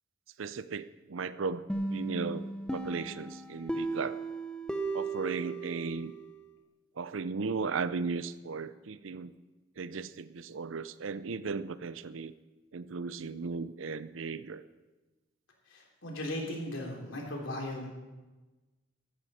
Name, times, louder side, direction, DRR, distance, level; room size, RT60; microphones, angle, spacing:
voice 1, 0.4-2.5 2.7-4.2 4.9-6.1 7.0-9.3 9.8-12.3 12.7-14.6, right 4 dB, 80° right, 15 dB, 0.6 m, -36 dB
sound 1, 1.7-6.4, right 2 dB, 5° left, 0.9 m, -36 dB
voice 2, 15.7-17.9, left 1 dB, 75° left, 0 dB, 3.5 m, -37 dB
15.5 x 13.5 x 4.3 m, 1.2 s
head